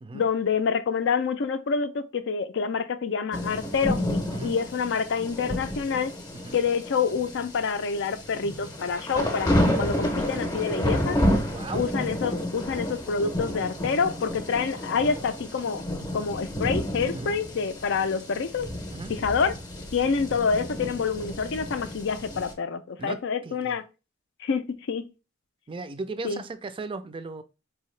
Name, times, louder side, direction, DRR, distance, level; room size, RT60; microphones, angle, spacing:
voice 1, 0.1-6.1 6.5-11.2 11.7-15.8 16.1-18.7 19.1-19.5 19.9-23.8 24.4-25.1 26.2-26.4, left 5 dB, 65° left, 0.4 m, -27 dB
sound 1, 3.3-22.5, equal, 20° left, 0.7 m, -30 dB
voice 2, 11.5-11.8 17.1-17.4 18.9-19.1 23.0-23.8 25.7-27.4, right 3 dB, 25° right, 0.4 m, -37 dB
4.5 x 2.8 x 3.1 m
head